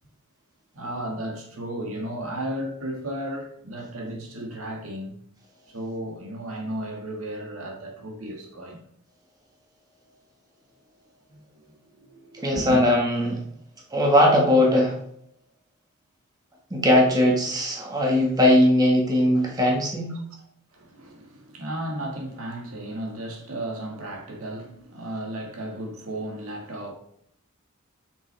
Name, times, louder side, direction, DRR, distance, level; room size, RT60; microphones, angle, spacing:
voice 1, 0.7-5.2 5.7-8.8 11.3-12.9 20.7-26.9, right 1 dB, 85° right, 1.8 m, -34 dB
voice 2, 12.4-13.4 13.9-14.9 16.7-20.1, left 1 dB, 20° right, 1.6 m, -19 dB
7.2 x 6.3 x 3.4 m
head